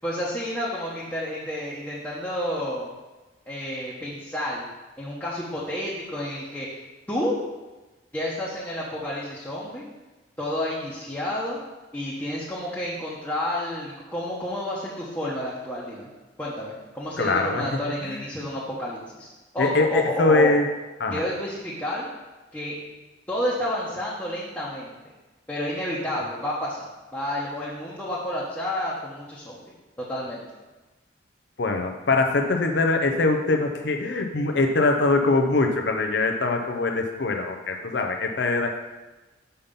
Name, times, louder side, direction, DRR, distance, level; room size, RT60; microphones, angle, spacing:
voice 1, 0.0-2.9 3.5-4.6 5.0-6.7 7.1-7.3 8.1-9.9 10.4-11.6 11.9-16.1 16.4-20.6 21.1-22.1 22.5-22.8 23.3-25.0 25.5-26.9 27.1-29.6 30.0-30.4, left 1 dB, 10° left, -7 dB, 1.0 m, -30 dB
voice 2, 17.2-17.6 18.0-18.2 19.6-20.6 21.0-21.2 31.6-38.8, left 3 dB, 60° left, 4 dB, 0.6 m, -22 dB
5.6 x 5.6 x 5.2 m, 1.1 s
head